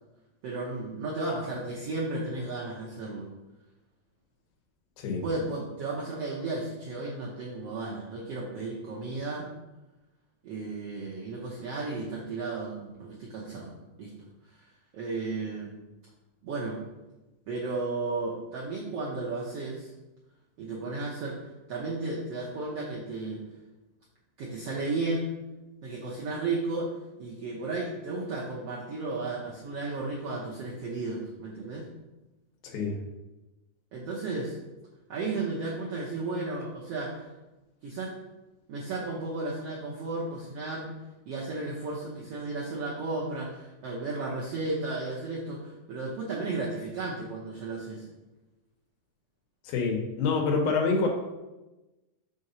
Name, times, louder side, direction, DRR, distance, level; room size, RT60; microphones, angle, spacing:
voice 1, 0.4-3.3 5.2-9.5 10.4-14.1 14.5-14.6 14.9-15.7 16.4-16.8 17.5-19.9 20.6-21.4 21.7-23.4 24.4-25.3 25.8-26.9 27.2-31.9 33.9-34.6 35.1-37.3 37.8-38.1 38.7-40.9 41.3-48.1, right 3 dB, 75° right, -5 dB, 1.4 m, -34 dB
voice 2, 32.6-33.0 49.6-51.1, left 4 dB, 90° left, 1 dB, 2.9 m, -27 dB
6.2 x 3.8 x 5.5 m, 1.1 s
omnidirectional pair, 4.0 m